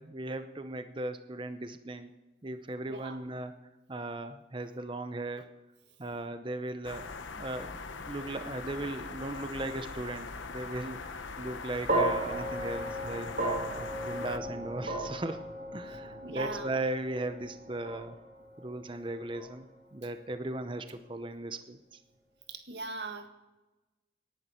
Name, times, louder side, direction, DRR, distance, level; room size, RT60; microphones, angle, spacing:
voice 1, 0.0-2.1 2.4-3.5 3.9-5.5 6.0-7.1 7.4-13.6 14.0-15.4 15.7-18.1 18.6-19.7 19.9-21.8, right 2 dB, 25° right, 9 dB, 0.7 m, -37 dB
sound 1, 6.8-14.4, left 4 dB, 90° left, 1.0 m, -42 dB
sound 2, 11.9-20.2, right 1 dB, 45° right, 4.3 m, -35 dB
voice 2, 16.2-16.7 22.5-23.3, right 3 dB, 65° right, 6 dB, 1.8 m, -39 dB
18.0 x 11.0 x 4.4 m, 1.1 s
head